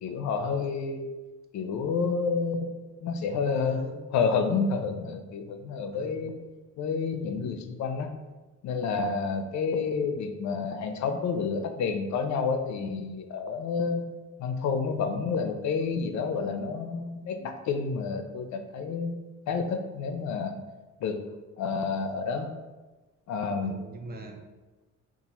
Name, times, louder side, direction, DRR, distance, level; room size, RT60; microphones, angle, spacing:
voice 1, 0.0-1.1 1.5-3.8 4.1-6.3 6.8-8.1 8.6-14.1 14.4-19.1 19.5-20.5 21.0-21.2 21.6-22.5 23.3-23.8, left 5 dB, 65° left, 6 dB, 0.5 m, -29 dB
voice 2, 3.5-4.0 5.9-6.3 23.6-24.5, right 3 dB, 35° right, 4 dB, 0.5 m, -43 dB
2.8 x 2.4 x 4.1 m, 1.2 s
cardioid pair, 90°, 30 cm